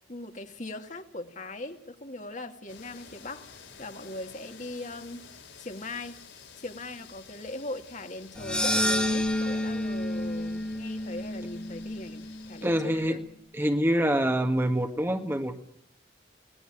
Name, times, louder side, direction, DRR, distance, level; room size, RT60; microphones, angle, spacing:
voice 1, 0.1-5.2 5.6-6.2 6.6-13.2, left 2 dB, 45° left, 5 dB, 2.3 m, -40 dB
sound 1, 2.7-12.7, left 6 dB, 90° left, 7.3 m, -51 dB
sound 2, 8.3-12.7, left 1 dB, 5° left, 2.1 m, -30 dB
voice 2, 12.6-13.2 13.5-15.6, equal, 15° right, 5 dB, 1.7 m, -26 dB
27.5 x 19.0 x 9.1 m, 0.70 s
head